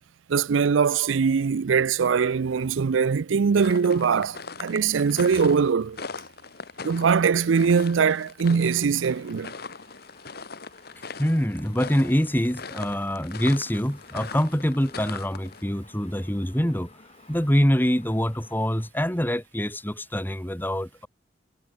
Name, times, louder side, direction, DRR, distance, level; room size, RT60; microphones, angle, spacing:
voice 1, 0.3-6.0 6.8-9.5, right 6 dB, 85° right, 0.5 m, -22 dB
sound 1, 3.5-15.6, left 4 dB, 55° left, 1.9 m, -40 dB
sound 2, 7.7-18.9, left 3 dB, 35° left, 6.6 m, -54 dB
voice 2, 11.2-16.9 17.3-21.1, equal, 10° left, 2.8 m, -25 dB
head